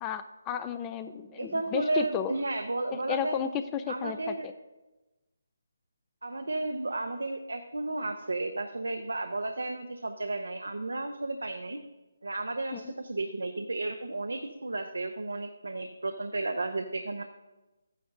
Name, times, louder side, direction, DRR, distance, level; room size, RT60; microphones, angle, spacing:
voice 1, 0.0-2.4 2.9-4.5 12.7-12.9, left 8 dB, 20° left, 10 dB, 0.4 m, -33 dB
voice 2, 1.3-3.4 3.9-4.5 6.2-11.8 12.2-17.2, right 2 dB, 85° right, 7 dB, 0.7 m, -33 dB
12.0 x 9.3 x 2.6 m, 1.1 s
figure-of-eight pair, 155°, 0 cm